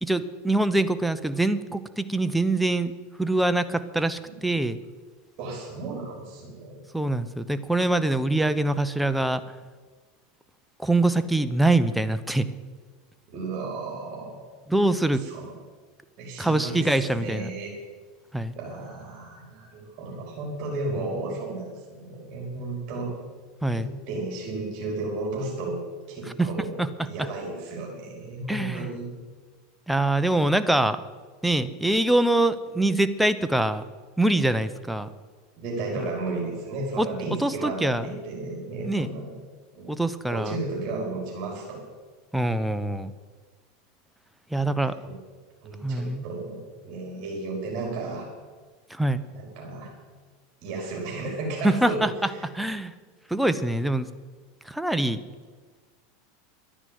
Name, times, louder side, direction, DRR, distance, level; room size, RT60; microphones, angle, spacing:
voice 1, 0.0-2.9 3.2-4.8 6.9-9.4 10.8-12.5 14.7-15.2 16.4-17.5 18.3-18.5 23.6-23.9 26.4-26.5 26.8-27.1 28.5-28.9 29.9-31.0 31.4-33.8 34.2-35.1 36.0-36.1 37.0-37.1 37.4-38.1 38.8-39.1 39.9-40.6 42.3-43.1 44.5-44.9 45.8-46.2 48.9-49.2 51.6-52.1 52.4-52.9 53.3-54.1 54.7-55.2, right 2 dB, 5° right, 11 dB, 0.8 m, -24 dB
voice 2, 5.4-6.8 13.3-14.5 15.1-15.5 16.2-17.7 18.6-23.1 23.7-25.8 26.1-26.8 27.0-29.1 35.6-39.3 39.7-40.0 40.3-41.8 44.6-45.2 45.6-48.3 49.3-49.9 50.6-52.0, right 2 dB, 45° right, -2 dB, 4.8 m, -33 dB
12.0 x 10.0 x 9.4 m, 1.4 s
hypercardioid pair, 110°, 0 cm